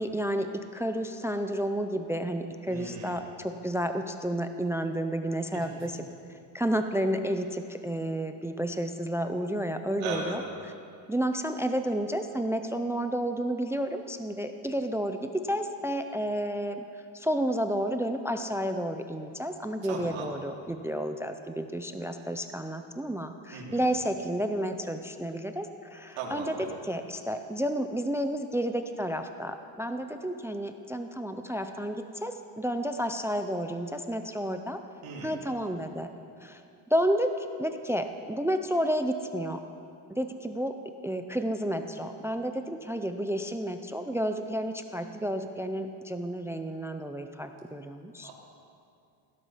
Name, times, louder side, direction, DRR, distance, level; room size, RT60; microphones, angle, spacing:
voice 1, 0.0-6.1 6.5-10.7 11.1-16.8 17.1-26.5 26.8-34.8 35.2-36.1 36.4-36.6 36.9-39.6 40.1-40.7 41.0-48.3, equal, 5° right, 7 dB, 0.4 m, -31 dB
voice 2, 2.7-3.2 5.5-5.6 10.0-10.4 19.9-20.3 23.5-23.8 26.2-26.7 35.0-35.3 48.2-48.3, right 5 dB, 85° right, -3 dB, 3.2 m, -37 dB
17.0 x 12.0 x 5.6 m, 2.5 s
cardioid pair, 140°, 47 cm